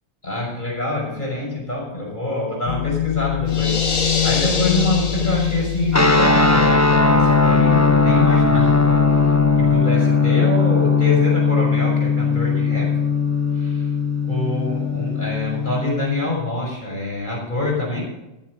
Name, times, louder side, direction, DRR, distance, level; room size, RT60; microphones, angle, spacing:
voice 1, 0.2-12.9 13.5-13.9 14.2-18.0, left 1 dB, 35° left, -2 dB, 5.9 m, -26 dB
sound 1, 2.7-9.8, left 12 dB, 65° left, 0.4 m, -25 dB
sound 2, 3.5-6.0, left 3 dB, 80° left, 2.2 m, -25 dB
sound 3, 5.9-16.3, left 4 dB, 15° left, 0.9 m, -18 dB
14.5 x 7.6 x 6.3 m, 0.95 s
omnidirectional pair, 1.3 m